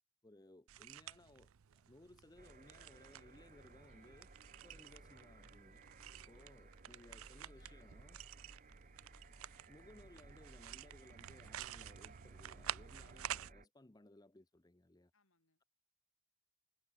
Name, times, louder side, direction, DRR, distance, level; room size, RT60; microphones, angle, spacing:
voice 1, 0.2-4.3 4.6-5.8 6.3-8.2 9.7-15.1, left 1 dB, 20° left, 0.6 m, -62 dB
sound 1, 0.7-13.5, right 11 dB, 80° right, 0.5 m, -51 dB
sound 2, 2.4-13.7, right 2 dB, 40° right, 1.6 m, -60 dB
voice 2, 3.9-4.4 6.1-9.1 13.1-13.5 15.1-15.6, left 4 dB, 75° left, 6.2 m, -78 dB
head